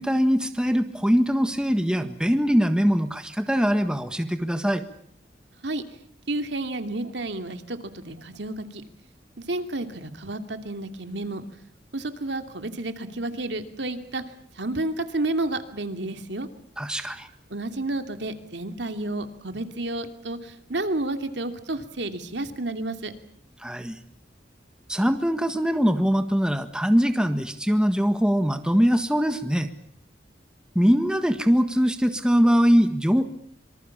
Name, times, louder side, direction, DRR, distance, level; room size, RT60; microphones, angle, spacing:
voice 1, 0.0-4.8 16.8-17.3 23.6-24.0 24.9-29.7 30.7-33.2, equal, 5° right, 8 dB, 1.5 m, -22 dB
voice 2, 6.3-8.8 9.4-11.5 11.9-14.2 14.5-16.5 17.5-23.1, right 2 dB, 70° right, 7 dB, 2.7 m, -31 dB
26.5 x 25.0 x 7.3 m, 0.66 s
head